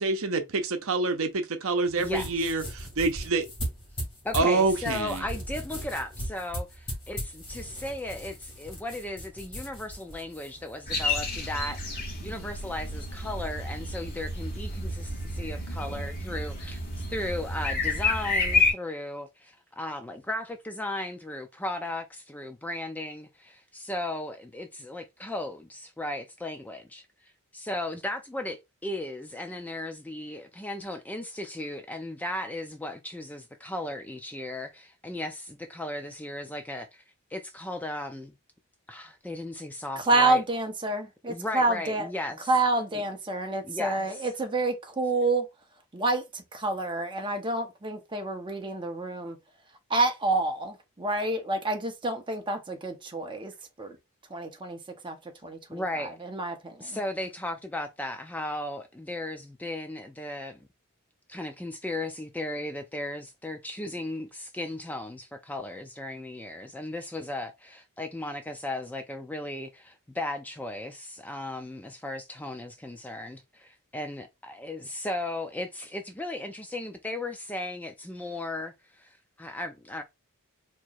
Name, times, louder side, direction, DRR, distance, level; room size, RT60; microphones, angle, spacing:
voice 1, 0.0-2.6 3.0-3.4 4.3-5.2, right 3 dB, 65° right, 0.7 m, -26 dB
sound 1, 1.9-11.6, equal, 25° left, 2.0 m, -39 dB
voice 2, 2.0-2.5 4.2-11.8 12.2-27.0 27.5-37.0 37.3-38.3 38.9-40.4 41.3-42.5 42.9-43.0 43.7-44.2 55.7-56.1 56.8-60.6 61.3-80.0, left 1 dB, 5° left, 0.4 m, -36 dB
sound 2, 10.9-18.7, left 3 dB, 40° left, 1.4 m, -30 dB
voice 3, 40.0-42.1 42.5-45.5 45.9-49.4 49.9-53.5 53.8-54.0 54.3-55.2 55.4-57.0, right 2 dB, 20° right, 0.8 m, -28 dB
4.5 x 2.9 x 2.4 m
head